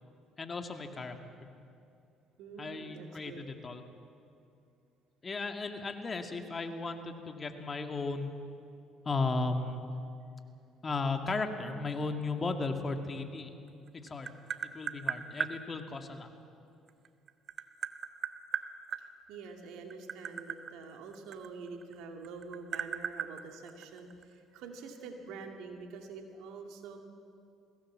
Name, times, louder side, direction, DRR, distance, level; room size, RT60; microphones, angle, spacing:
voice 1, 0.4-1.2 2.6-3.8 5.2-8.3 9.0-9.8 10.8-13.5 13.9-14.4 14.6-16.3, left 3 dB, 35° left, 5 dB, 2.1 m, -35 dB
voice 2, 2.4-3.5 19.0-27.0, right 4 dB, 70° right, 3 dB, 2.5 m, -46 dB
Tap, 13.7-15.5 16.9-19.0 19.8-21.9 22.2-24.2, right 8 dB, 50° right, 1.0 m, -37 dB
22.5 x 16.5 x 7.5 m, 2.5 s
hypercardioid pair, 60°, 0 cm